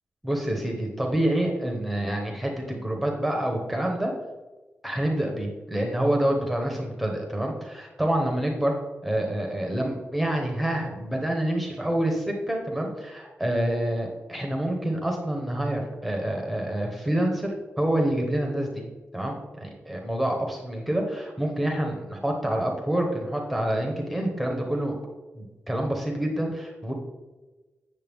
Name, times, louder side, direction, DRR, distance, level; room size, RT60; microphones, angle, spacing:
voice 1, 0.2-4.1 4.8-8.8 9.0-17.5 17.8-18.8 19.1-24.9 25.4-26.9, right 1 dB, ahead, 1 dB, 1.0 m, -27 dB
8.6 x 6.7 x 3.5 m, 1.2 s
wide cardioid pair, 170°, 5 cm